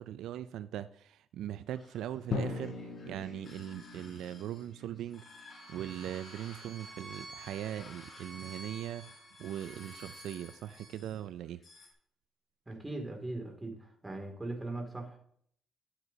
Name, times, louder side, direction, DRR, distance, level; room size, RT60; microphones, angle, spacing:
voice 1, 0.0-2.7 3.1-5.2 5.7-11.6, right 11 dB, 80° right, 0.3 m, -40 dB
sound 1, 1.7-11.9, left 3 dB, 40° left, 3.6 m, -56 dB
Drum, 2.3-6.1, left 4 dB, 65° left, 1.0 m, -41 dB
Bowed string instrument, 5.5-10.9, right 3 dB, 45° right, 1.6 m, -51 dB
voice 2, 12.7-13.8 14.0-15.2, right 2 dB, 15° right, 2.4 m, -39 dB
12.5 x 8.0 x 2.8 m
cardioid pair, 90°, 0 cm